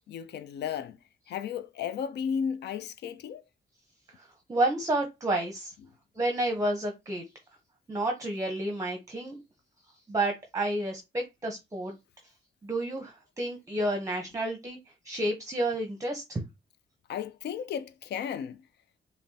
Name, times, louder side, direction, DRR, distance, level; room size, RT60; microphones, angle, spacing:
voice 1, 0.1-1.0 1.3-3.4 17.1-18.6, left 7 dB, 85° left, 0.4 m, -34 dB
voice 2, 4.2-5.7 6.1-7.2 7.9-9.4 10.1-11.9 12.6-14.8 15.0-16.4, right 1 dB, 20° right, 0.7 m, -30 dB
5.3 x 2.1 x 2.7 m
cardioid pair, 95°, 17 cm